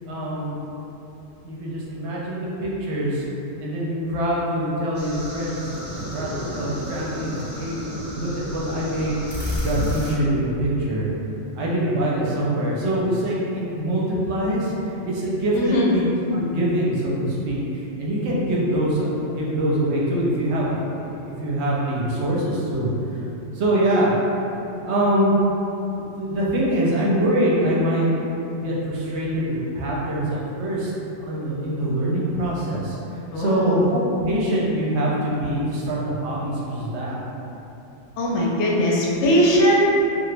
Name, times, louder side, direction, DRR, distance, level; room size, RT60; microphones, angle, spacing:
voice 1, 0.1-0.6 1.4-3.2 3.6-5.8 6.1-7.8 8.1-11.1 11.6-14.7 15.0-16.0 16.3-17.6 18.0-22.9 23.5-24.1 24.8-25.4 25.9-28.1 28.5-30.9 31.2-33.0 33.4-37.2, right 1 dB, 70° right, -5 dB, 0.9 m, -24 dB
sound 1, 4.9-10.1, left 1 dB, 15° right, 0.4 m, -31 dB
voice 2, 15.5-15.9 33.3-33.8 38.2-39.8, equal, 75° left, -4 dB, 0.8 m, -20 dB
2.9 x 2.3 x 3.2 m, 2.9 s
omnidirectional pair, 1.2 m